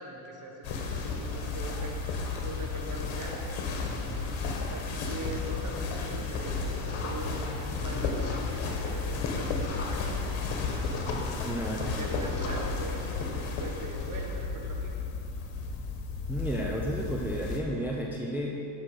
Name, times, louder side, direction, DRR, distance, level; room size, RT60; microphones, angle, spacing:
voice 1, 0.0-1.9 2.3-3.6 4.7-10.9 11.9-14.9, right 2 dB, 40° right, 0 dB, 1.4 m, -41 dB
sound 1, 0.6-17.6, left 4 dB, 80° left, 1.3 m, -33 dB
voice 2, 11.0-11.9 16.3-18.5, right 1 dB, 5° right, -3 dB, 0.6 m, -33 dB
8.4 x 6.0 x 4.8 m, 2.8 s
cardioid pair, 115°, 46 cm